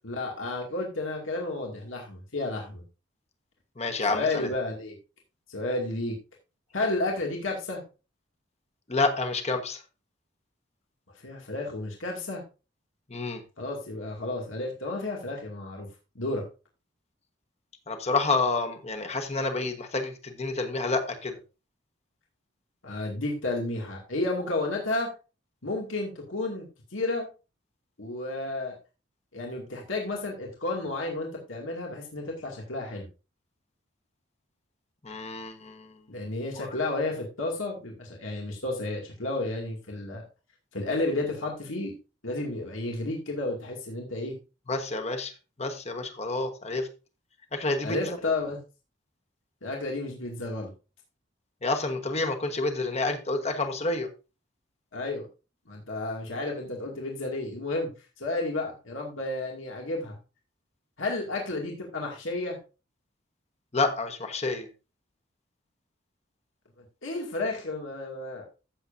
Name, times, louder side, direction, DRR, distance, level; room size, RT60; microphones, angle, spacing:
voice 1, 0.0-2.8 4.1-5.0 5.5-6.2 6.7-7.8 11.2-12.4 13.6-15.9 16.2-16.4 22.8-25.1 25.6-27.3 28.0-28.8 29.3-33.1 36.1-40.3 40.7-41.9 42.2-44.3 47.8-48.6 49.6-50.7 54.9-55.3 55.7-57.9 58.2-60.2 61.0-62.6 67.0-68.5, left 2 dB, 85° left, 0 dB, 2.3 m, -32 dB
voice 2, 3.8-4.5 8.9-9.8 13.1-13.4 17.9-21.3 35.0-36.0 36.6-36.8 44.7-45.3 45.6-46.9 47.5-48.2 51.6-54.1 63.7-64.7, left 3 dB, 35° left, 6 dB, 1.3 m, -29 dB
14.5 x 7.1 x 2.6 m, 0.31 s
head